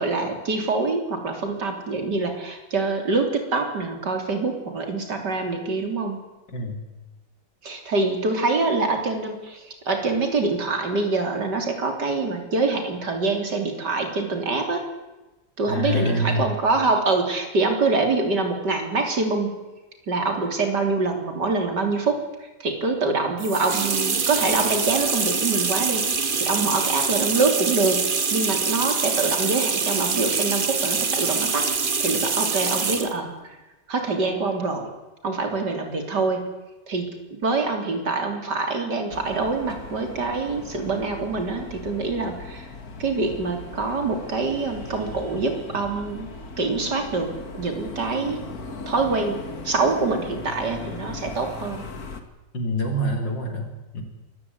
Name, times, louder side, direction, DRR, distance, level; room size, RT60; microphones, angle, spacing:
voice 1, 0.0-6.2 7.6-14.9 15.6-19.6 20.1-28.0 28.3-31.7 32.0-33.6 33.9-34.9 35.2-36.5 36.9-42.7 43.0-46.3 46.6-48.4 48.9-51.9, right 3 dB, 70° right, 5 dB, 4.0 m, -25 dB
voice 2, 6.5-6.8 15.7-16.5 52.5-54.0, left 1 dB, 85° left, 4 dB, 4.6 m, -26 dB
sound 1, 23.4-33.2, right 5 dB, 30° right, 1.2 m, -24 dB
sound 2, 39.1-52.2, left 3 dB, 55° left, 2.4 m, -38 dB
23.5 x 14.5 x 9.7 m, 1.1 s
omnidirectional pair, 1.9 m